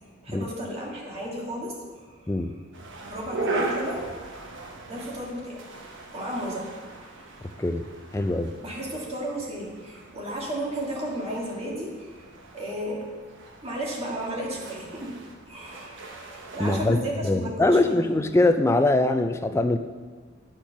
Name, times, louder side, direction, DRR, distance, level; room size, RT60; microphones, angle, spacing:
voice 1, 0.2-1.8 2.2-2.3 3.1-4.1 4.9-5.6 6.1-6.7 8.6-12.1 12.5-13.0 13.6-15.2 15.5-18.2, right 1 dB, 30° right, -4 dB, 1.8 m, -33 dB
sound 1, 2.7-16.8, right 2 dB, 65° right, 1.1 m, -38 dB
voice 2, 8.1-8.5 16.6-19.8, left 2 dB, 15° left, 8 dB, 0.4 m, -22 dB
10.0 x 4.5 x 5.8 m, 1.5 s
head